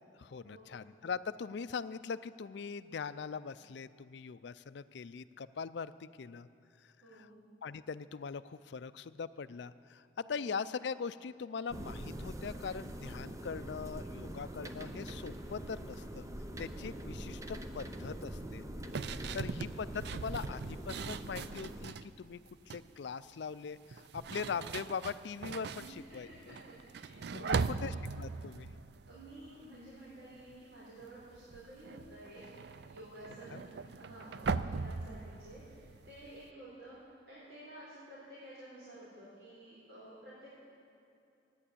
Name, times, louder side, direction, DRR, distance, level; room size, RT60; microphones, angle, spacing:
voice 1, 0.2-6.5 7.1-7.3 7.6-16.3 16.6-18.6 19.3-22.4 22.7-26.5 27.3-28.7 33.5-33.6, left 5 dB, 65° left, 14 dB, 0.4 m, -41 dB
voice 2, 7.0-7.3 10.2-10.5 17.0-17.2 19.1-19.4 25.7-27.8 29.1-33.6 34.0-37.0 37.3-40.5, right 1 dB, 90° right, -8 dB, 3.9 m, -52 dB
sound 1, 11.7-21.9, right 1 dB, 15° right, 0.6 m, -44 dB
sound 2, 18.9-22.1 22.5-22.9 23.8-30.1 30.4-30.7 31.0-36.5, right 4 dB, 60° right, 0.4 m, -40 dB
14.0 x 9.9 x 8.5 m, 2.6 s
head